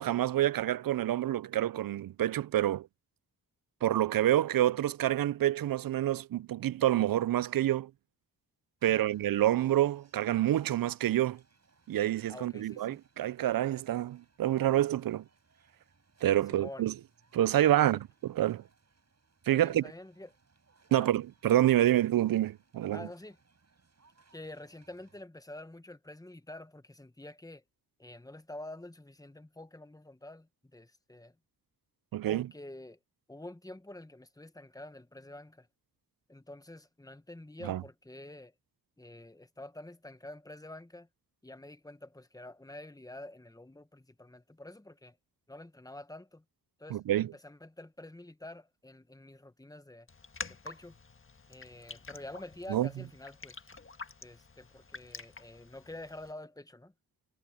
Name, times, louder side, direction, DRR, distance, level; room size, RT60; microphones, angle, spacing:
voice 1, 0.0-2.9 3.8-7.9 8.8-11.4 11.9-15.2 16.2-16.9 17.3-18.6 19.5-19.8 20.9-23.0 32.1-32.5 37.6-37.8 46.9-47.3 52.7-52.9, right 13 dB, 60° right, 0.5 m, -27 dB
sound 1, 8.8-25.2, right 4 dB, 40° right, 7.7 m, -68 dB
voice 2, 12.3-13.0 16.5-16.9 17.7-18.0 19.5-20.3 20.9-21.1 22.9-23.4 24.3-27.6 28.0-31.4 32.2-33.0 33.3-35.7 36.3-38.5 39.0-41.1 41.4-45.2 45.5-46.4 46.8-50.1 50.5-51.0 51.5-53.6 54.2-56.9, left 1 dB, 10° left, 1.3 m, -48 dB
Raindrop, 50.1-56.3, left 4 dB, 30° left, 1.6 m, -48 dB
cardioid pair, 65°, 39 cm